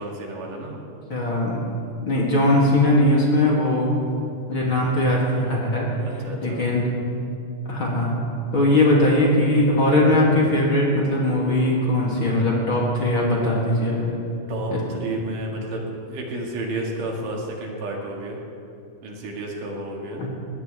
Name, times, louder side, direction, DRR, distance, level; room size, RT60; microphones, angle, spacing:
voice 1, 0.0-0.9 1.8-1.9 2.5-2.7 6.2-6.6 14.5-18.4 19.0-20.2, right 1 dB, 70° right, -1 dB, 3.6 m, -31 dB
voice 2, 1.1-1.6 2.1-3.9 4.5-5.9 6.4-6.9 7.7-8.1 8.5-14.2 14.7-14.8 20.2-20.3, left 1 dB, 40° left, -4 dB, 3.1 m, -20 dB
22.0 x 17.5 x 3.5 m, 2.6 s
omnidirectional pair, 3.9 m